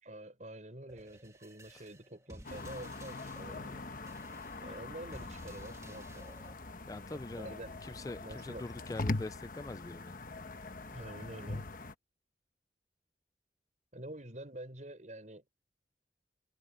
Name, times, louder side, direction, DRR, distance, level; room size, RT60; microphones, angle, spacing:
voice 1, 0.0-3.8 4.6-6.2 7.4-7.8 8.2-8.7 10.9-11.7 13.9-15.4, right 1 dB, 45° right, 5.7 m, -47 dB
sound 1, 0.9-6.5, right 1 dB, 15° right, 1.8 m, -55 dB
sound 2, 2.4-11.9, left 2 dB, 50° left, 1.1 m, -42 dB
voice 2, 6.9-7.5 7.8-10.2, left 2 dB, 20° left, 0.3 m, -43 dB
head